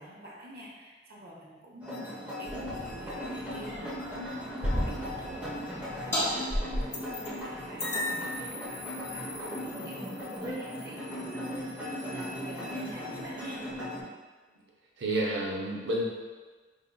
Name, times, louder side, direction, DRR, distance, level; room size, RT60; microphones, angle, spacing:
voice 1, 0.0-13.6, right 1 dB, 55° right, -4 dB, 0.7 m, -46 dB
sound 1, 1.8-14.0, equal, 10° right, 1.0 m, -38 dB
sound 2, 2.5-12.2 12.5-12.7 13.1-13.9, equal, 30° left, 1.3 m, -41 dB
sound 3, 6.1-6.2 6.5-7.4 7.8-12.9, left 1 dB, 15° left, 1.0 m, -36 dB
voice 2, 15.0-16.0, right 1 dB, 90° right, -3 dB, 0.7 m, -29 dB
5.4 x 3.5 x 2.2 m, 1.4 s
head